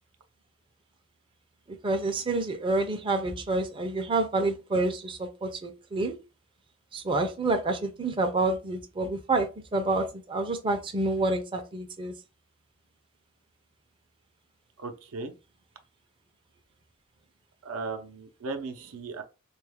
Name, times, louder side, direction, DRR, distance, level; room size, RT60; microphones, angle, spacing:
voice 1, 1.7-6.2 6.9-12.1, right 2 dB, 25° right, 0.4 m, -28 dB
voice 2, 14.8-15.3 17.6-19.2, right 4 dB, 80° right, 0.6 m, -36 dB
3.4 x 2.3 x 3.4 m
head